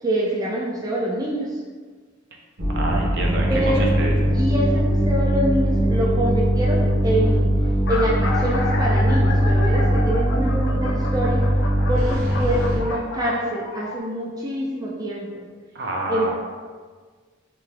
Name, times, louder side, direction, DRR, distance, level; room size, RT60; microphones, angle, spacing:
voice 1, 0.0-1.6 3.5-3.9 4.3-7.5 7.9-11.4 11.9-15.4 16.1-16.3, equal, 20° right, -4 dB, 0.4 m, -25 dB
sound 1, 2.6-12.8, equal, 90° right, 1.1 m, -20 dB
voice 2, 2.8-4.2 15.7-16.3, right 2 dB, 60° right, 0 dB, 0.6 m, -27 dB
sound 2, 5.8-6.1 6.9-7.0 7.2-7.3 7.6-14.0, left 2 dB, 60° left, 0.4 m, -32 dB
3.3 x 2.7 x 3.4 m, 1.5 s
head